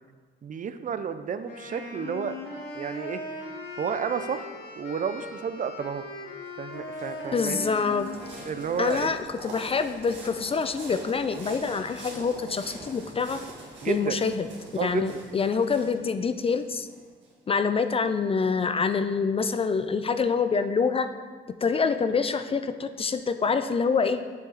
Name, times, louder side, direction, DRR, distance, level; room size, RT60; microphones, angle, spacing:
voice 1, 0.4-2.4 2.7-3.2 3.8-4.5 4.7-6.0 6.6-7.7 8.4-9.2 13.8-14.2 14.8-15.2, right 7 dB, 40° right, 11 dB, 0.4 m, -31 dB
Wind instrument woodwind instrument, 1.5-9.6, left 2 dB, 60° left, 1.6 m, -39 dB
sound 1, 6.5-17.3, right 2 dB, 65° right, 1.9 m, -45 dB
voice 2, 7.3-8.1 8.8-13.4 13.9-14.5 14.7-16.9 17.5-21.1 21.6-24.2, left 5 dB, 30° left, 10 dB, 0.4 m, -26 dB
7.1 x 5.4 x 3.9 m, 1.5 s
cardioid pair, 90°, 20 cm